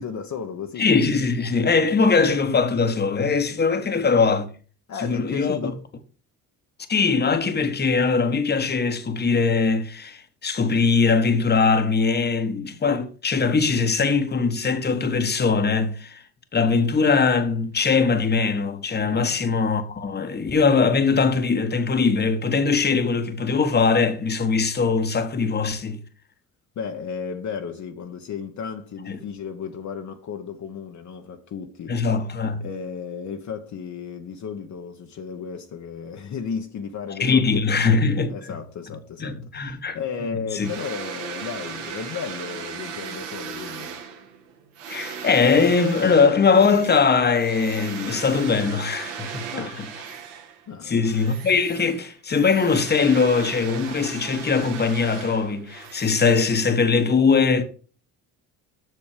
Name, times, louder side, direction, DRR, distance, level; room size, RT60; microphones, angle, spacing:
voice 1, 0.0-0.9 3.8-3.9 4.9-5.8 19.1-19.3 26.8-32.1 32.6-37.8 38.3-43.9 49.5-49.8 50.7-51.2, left 6 dB, 45° left, 1.1 m, -34 dB
voice 2, 0.8-4.5 5.0-5.7 6.9-16.2 16.5-26.0 29.1-29.2 31.9-32.6 37.2-38.3 39.2-40.0 40.5-40.7 44.9-49.7 50.8-57.6, left 5 dB, 25° left, 1.3 m, -21 dB
sound 1, 40.6-50.7 51.0-57.0, right 7 dB, 80° right, 1.8 m, -37 dB
7.7 x 6.1 x 5.0 m
supercardioid pair, 75°, 39 cm